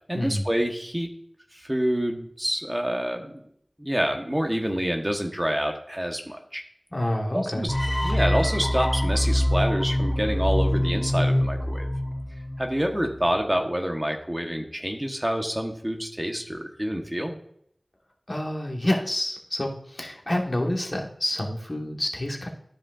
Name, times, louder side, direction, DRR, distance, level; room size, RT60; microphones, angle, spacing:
voice 1, 0.1-1.1 1.5-3.4 3.8-6.6 7.3-7.7 8.0-11.9 12.6-17.4, equal, 20° right, 3 dB, 1.1 m, -27 dB
voice 2, 6.9-7.7 18.3-22.5, left 1 dB, 40° left, 1 dB, 1.4 m, -28 dB
sound 1, 7.7-12.8, left 1 dB, 20° left, 0.6 m, -24 dB
12.5 x 5.1 x 2.5 m, 0.68 s
wide cardioid pair, 45°, 0 cm